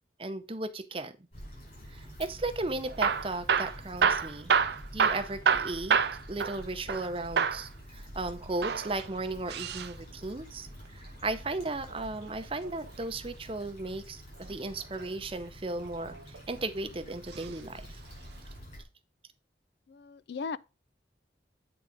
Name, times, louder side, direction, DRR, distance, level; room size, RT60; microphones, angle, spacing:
voice 1, 0.2-1.1 1.9-4.5 4.9-6.0 6.3-10.7 10.9-18.0, right 2 dB, 30° right, 0.7 m, -36 dB
Stream / Traffic noise roadway noise / Trickle dribble, 1.3-18.8, equal, 45° left, 4.7 m, -48 dB
Hammer / Drill, 2.9-7.1 7.4-7.7 8.5-9.9 11.7-12.9 14.6-15.1 15.8-16.6 17.3-17.5 17.8-17.9 18.6-18.7, right 6 dB, 70° right, 0.5 m, -28 dB
voice 2, 19.9-20.6, left 5 dB, 70° left, 0.4 m, -37 dB
8.3 x 3.9 x 5.1 m
head